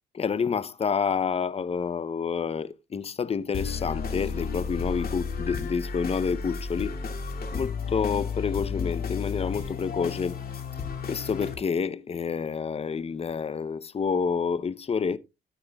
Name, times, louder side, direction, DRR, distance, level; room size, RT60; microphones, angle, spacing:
voice 1, 0.1-7.0 7.5-10.4 11.1-15.2, left 6 dB, 30° left, 0.7 m, -28 dB
sound 1, 3.5-11.5, left 5 dB, 50° left, 2.4 m, -32 dB
13.0 x 9.2 x 2.3 m
cardioid pair, 90°, 20 cm